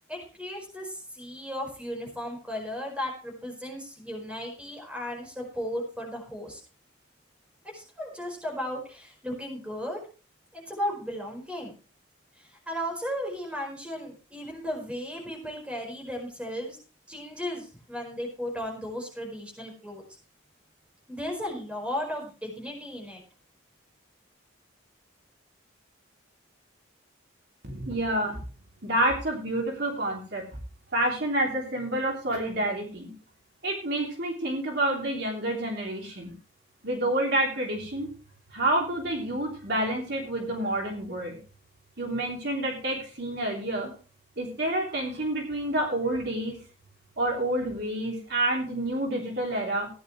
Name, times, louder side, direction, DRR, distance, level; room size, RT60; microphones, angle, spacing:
voice 1, 0.1-6.6 7.7-10.0 10.5-11.7 12.4-16.8 17.1-20.0 21.1-23.2, equal, 5° right, 0 dB, 4.8 m, -35 dB
voice 2, 27.6-28.4 28.8-30.4 30.9-33.1 33.6-36.3 36.8-38.1 38.5-41.4 42.0-43.9 44.4-46.6 47.2-49.9, right 1 dB, 55° right, -1 dB, 3.2 m, -28 dB
15.5 x 10.5 x 3.2 m, 0.35 s
head